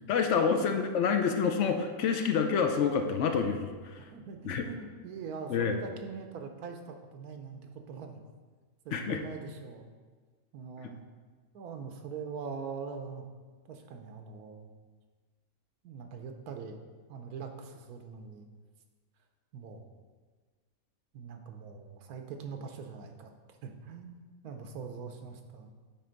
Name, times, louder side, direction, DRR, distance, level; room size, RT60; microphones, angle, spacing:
voice 1, 0.1-3.7 4.4-4.6 5.5-5.7 8.9-9.2, left 6 dB, 65° left, 6 dB, 0.8 m, -27 dB
voice 2, 4.0-8.2 8.8-9.9 10.5-11.0 11.5-13.3 13.7-14.7 15.8-16.8 17.1-18.5 19.5-19.9 21.1-23.3 23.6-25.7, right 5 dB, 85° right, 5 dB, 1.2 m, -43 dB
8.7 x 3.4 x 5.1 m, 1.5 s
omnidirectional pair, 1.6 m